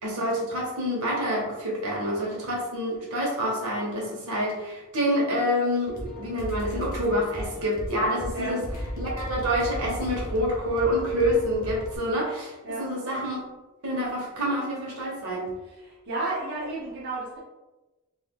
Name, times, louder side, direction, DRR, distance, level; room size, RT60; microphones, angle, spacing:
voice 1, 0.0-8.6 9.0-12.5 12.8-13.4 13.8-15.4, equal, 75° right, -3 dB, 1.1 m, -27 dB
sound 1, 5.9-12.0, equal, 40° left, 0.6 m, -35 dB
voice 2, 15.6-17.4, right 2 dB, 50° right, -7 dB, 0.7 m, -32 dB
2.7 x 2.4 x 3.5 m, 1.1 s
head